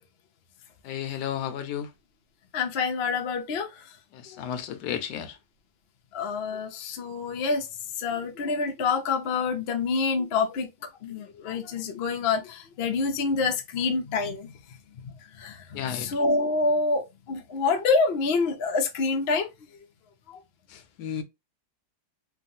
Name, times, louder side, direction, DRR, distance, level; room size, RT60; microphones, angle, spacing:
voice 1, 0.8-1.9 4.1-5.4 15.7-16.2 20.7-21.2, left 9 dB, 80° left, 1.2 m, -33 dB
voice 2, 2.5-3.9 4.3-4.4 6.1-7.7 7.9-14.5 15.0-19.5 20.3-20.4, left 4 dB, 65° left, 0.6 m, -27 dB
3.2 x 2.3 x 2.6 m
omnidirectional pair, 1.8 m